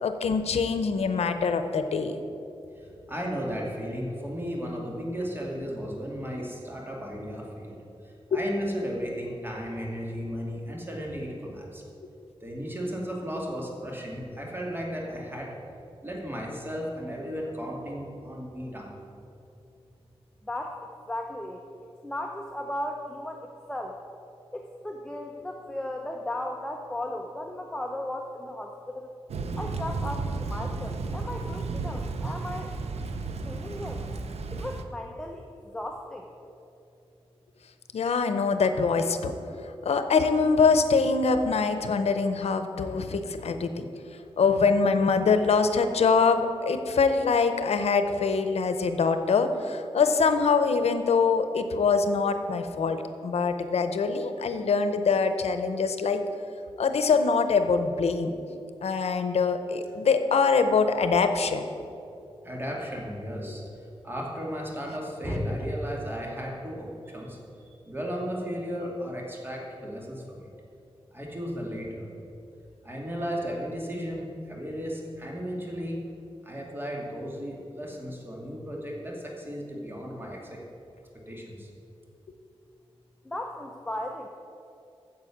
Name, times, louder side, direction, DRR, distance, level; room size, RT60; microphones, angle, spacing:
voice 1, 0.0-2.2 8.3-8.4 37.9-43.8 44.4-56.2 56.8-58.3 58.8-61.7, left 5 dB, 90° left, 8 dB, 0.7 m, -24 dB
voice 2, 2.8-7.8 8.0-11.8 12.4-15.5 16.0-19.0 62.4-63.6 64.0-67.4 67.9-70.5 71.1-72.1 72.8-76.0 76.4-80.6 81.3-81.7, equal, 20° right, -2 dB, 2.5 m, -35 dB
voice 3, 20.4-21.6 22.0-24.0 24.5-29.1 29.6-32.8 33.4-34.0 34.5-36.3 83.2-84.3, left 1 dB, 5° left, 2 dB, 0.8 m, -36 dB
Thunder / Rain, 29.3-34.8, right 3 dB, 90° right, 0.7 m, -33 dB
9.7 x 7.4 x 7.2 m, 2.7 s
wide cardioid pair, 80°, 10 cm